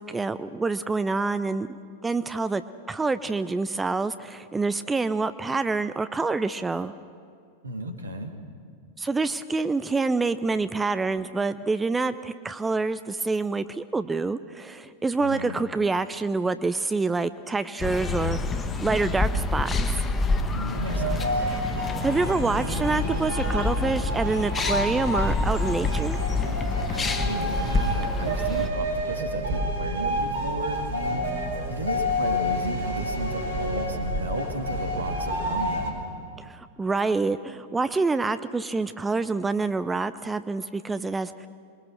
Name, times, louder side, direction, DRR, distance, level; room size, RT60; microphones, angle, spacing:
voice 1, 0.0-2.6 2.9-6.9 9.0-20.1 22.0-26.2 36.5-41.5, right 3 dB, 10° right, 13 dB, 0.6 m, -27 dB
voice 2, 7.6-8.3 15.2-15.6 20.5-21.5 26.9-36.0, right 1 dB, 75° right, 5 dB, 2.3 m, -34 dB
sound 1, 17.8-28.7, left 3 dB, 20° left, 1.6 m, -28 dB
sound 2, 20.7-35.9, equal, 60° right, 4.7 m, -29 dB
27.0 x 22.5 x 6.3 m, 2.3 s
figure-of-eight pair, 90°, 0 cm